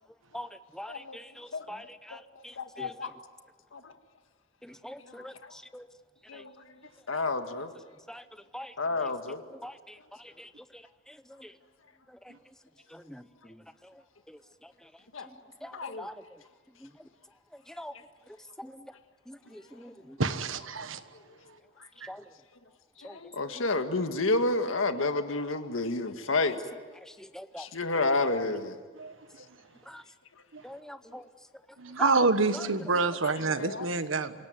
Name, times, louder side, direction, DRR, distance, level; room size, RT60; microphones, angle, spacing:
voice 1, 0.3-3.1 4.6-5.9 6.3-6.4 8.1-9.1 9.5-11.6 12.1-12.5 12.9-14.0 14.3-14.9 15.2-16.4 16.8-17.1 17.5-17.9 18.3-18.9 19.3-20.2 22.1-22.3 23.0-23.2 23.5-23.6 25.0-25.1 26.5-26.6 27.0-27.7 29.9-30.0 30.6-31.3 32.0-32.1 32.5-32.7 33.1-33.2, left 1 dB, 5° left, 11 dB, 0.8 m, -45 dB
voice 2, 1.5-2.2 2.6-3.1 3.7-3.9 5.1-5.5 6.3-6.5 7.1-7.7 8.8-9.4 15.1-15.3 15.7-16.1 23.0-26.6 27.6-28.8 33.4-33.9, left 3 dB, 90° left, 7 dB, 1.8 m, -30 dB
voice 3, 20.2-21.0 22.0-22.1 28.9-29.1 30.5-30.6 31.8-34.3, right 3 dB, 80° right, 11 dB, 1.4 m, -27 dB
27.0 x 17.5 x 9.5 m, 1.5 s
head